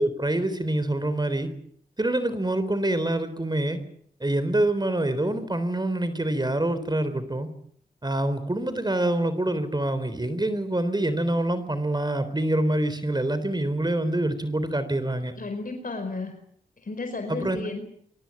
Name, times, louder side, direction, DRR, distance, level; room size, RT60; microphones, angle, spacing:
voice 1, 0.0-1.5 2.0-3.8 4.2-7.5 8.0-15.3 17.3-17.6, right 1 dB, 25° right, 12 dB, 3.6 m, -26 dB
voice 2, 15.4-16.3 16.8-17.8, left 3 dB, 55° left, 6 dB, 4.7 m, -33 dB
24.0 x 19.5 x 8.4 m, 0.64 s
cardioid pair, 50°, 17 cm